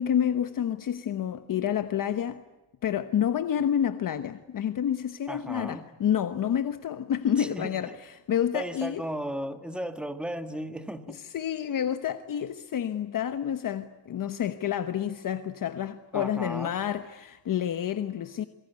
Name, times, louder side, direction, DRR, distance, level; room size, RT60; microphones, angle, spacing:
voice 1, 0.0-2.4 2.8-9.0 11.1-18.4, left 9 dB, 45° left, 1.2 m, -29 dB
voice 2, 5.3-5.8 7.4-7.8 8.5-11.2 16.1-16.8, right 1 dB, ahead, 1.7 m, -35 dB
27.0 x 23.5 x 8.3 m
cardioid pair, 160°, 43 cm